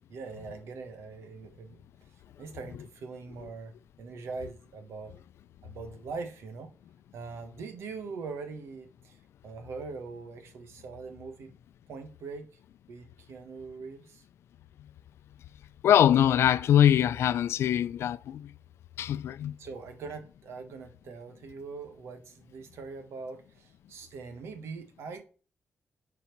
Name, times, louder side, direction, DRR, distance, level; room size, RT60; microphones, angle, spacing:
voice 1, 0.1-1.8 2.4-5.2 5.6-6.7 7.1-11.5 11.9-12.5 12.9-14.2 19.6-25.2, right 4 dB, 90° right, 1.4 m, -42 dB
voice 2, 15.8-18.5 19.0-19.6, left 10 dB, 85° left, 0.5 m, -23 dB
9.9 x 4.3 x 6.0 m
cardioid pair, 95°, 4 cm